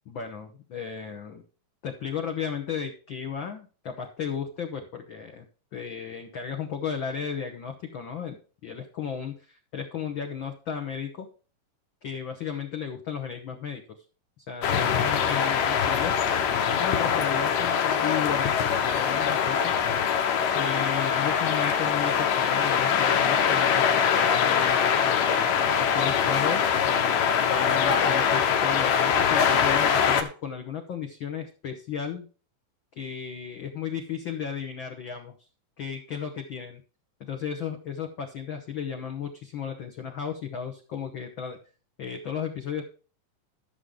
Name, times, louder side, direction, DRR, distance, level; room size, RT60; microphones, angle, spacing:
voice 1, 0.1-1.4 1.8-5.5 5.7-11.3 12.0-13.8 14.4-18.5 18.8-19.7 20.5-32.3 32.9-35.4 35.8-36.8 37.2-41.6 42.0-42.8, left 7 dB, 65° left, 3 dB, 1.2 m, -34 dB
sound 1, 14.6-30.2, left 7 dB, 85° left, 2.7 m, -23 dB
13.0 x 7.0 x 3.7 m, 0.37 s
omnidirectional pair, 3.8 m